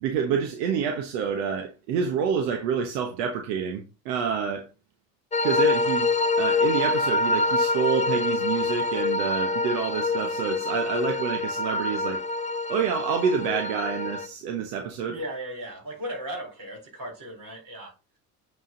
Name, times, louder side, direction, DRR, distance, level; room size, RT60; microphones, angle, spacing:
voice 1, 0.0-4.7 5.4-12.2 12.7-15.2, right 7 dB, 80° right, 1.1 m, -28 dB
sound 1, 5.3-14.3, left 3 dB, 15° left, 0.7 m, -26 dB
voice 2, 15.1-17.9, equal, 45° right, 4.0 m, -36 dB
9.0 x 3.7 x 3.9 m
hypercardioid pair, 70°, 47 cm